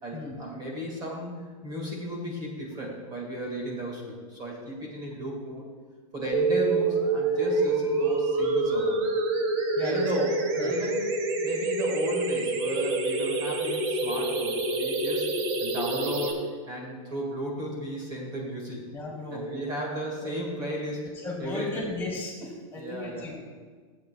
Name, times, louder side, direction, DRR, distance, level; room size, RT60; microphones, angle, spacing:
voice 1, 0.0-5.6 6.1-9.1 9.8-11.0 11.4-15.3 15.6-18.9 19.3-21.1 21.4-21.9 22.8-23.3, equal, 25° right, -2 dB, 1.8 m, -34 dB
sound 1, 6.3-16.3, right 3 dB, 50° right, 1.3 m, -27 dB
voice 2, 9.8-10.8 18.9-19.5 21.2-23.4, left 2 dB, 10° left, -3 dB, 2.7 m, -36 dB
14.0 x 8.5 x 2.2 m, 1.5 s
supercardioid pair, 155°, 18 cm